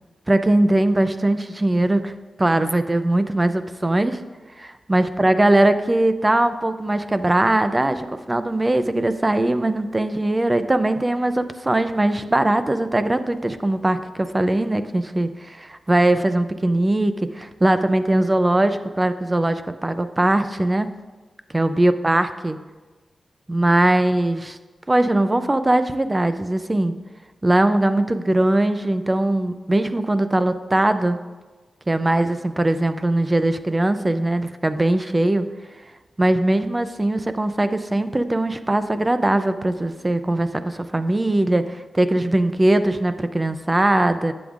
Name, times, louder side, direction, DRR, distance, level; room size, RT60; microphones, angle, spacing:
voice 1, 0.3-2.1 2.4-4.2 4.6-20.9 21.5-22.6 23.5-24.6 24.9-26.9 27.4-31.2 31.9-35.5 36.2-44.3, right 1 dB, 15° right, 10 dB, 0.4 m, -20 dB
11.5 x 7.9 x 2.5 m, 1.2 s
wide cardioid pair, 135°, 0 cm